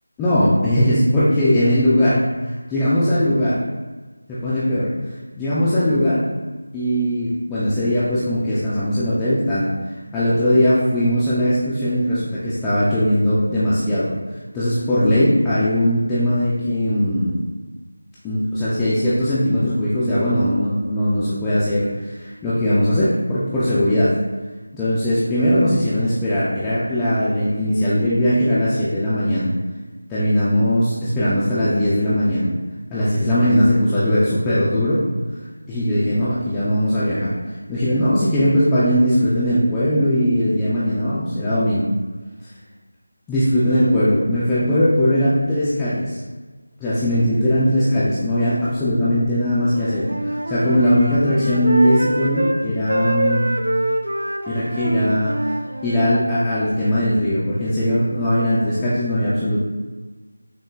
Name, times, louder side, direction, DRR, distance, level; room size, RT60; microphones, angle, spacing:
voice 1, 0.2-3.5 4.3-4.9 5.4-6.2 6.7-14.1 14.5-17.4 18.2-24.1 24.7-29.5 30.1-32.5 32.9-35.0 35.7-37.3 37.7-41.8 43.3-46.2 46.8-53.5 54.5-59.6, equal, 5° left, -12 dB, 0.3 m, -19 dB
Wind instrument woodwind instrument, 49.7-52.6 52.9-56.2, right 1 dB, 75° right, 0.4 m, -25 dB
6.2 x 2.1 x 2.3 m, 1.3 s
figure-of-eight pair, 170°, 0 cm